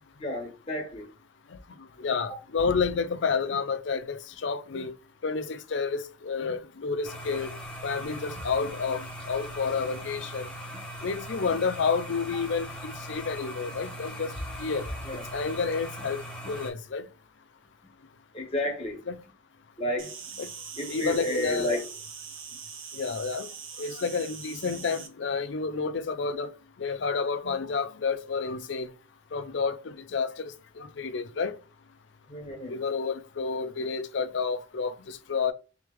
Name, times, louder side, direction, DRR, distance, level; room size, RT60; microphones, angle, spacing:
voice 1, 0.2-1.1 15.0-15.2 18.3-19.0 19.8-20.2 20.8-21.8 32.3-32.8, left 1 dB, 30° left, 1.4 m, -31 dB
voice 2, 2.0-4.9 5.2-7.5 7.8-10.5 11.0-14.9 15.3-16.2 16.5-17.1 19.1-19.2 20.4-20.5 20.9-21.8 22.9-23.5 23.8-26.5 26.8-28.9 29.3-31.5 32.6-35.5, left 5 dB, 70° left, 0.5 m, -30 dB
sound 1, 7.0-16.7, equal, 5° left, 1.0 m, -39 dB
Insect, 20.0-25.1, right 6 dB, 80° right, 0.8 m, -42 dB
3.4 x 3.2 x 3.5 m
head